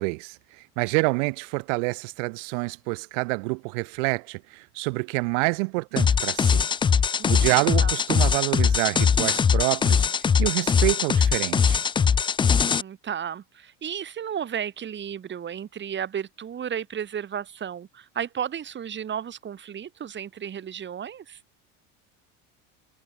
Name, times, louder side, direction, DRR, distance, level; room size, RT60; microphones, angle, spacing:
voice 1, 0.0-6.7 7.3-11.8, right 32 dB, 80° right, 6.7 m, -27 dB
sound 1, 6.0-12.8, left 6 dB, 15° left, 0.4 m, -21 dB
voice 2, 7.2-7.5 7.8-8.0 12.4-21.4, right 8 dB, 30° right, 5.4 m, -33 dB
cardioid pair, 135°, 36 cm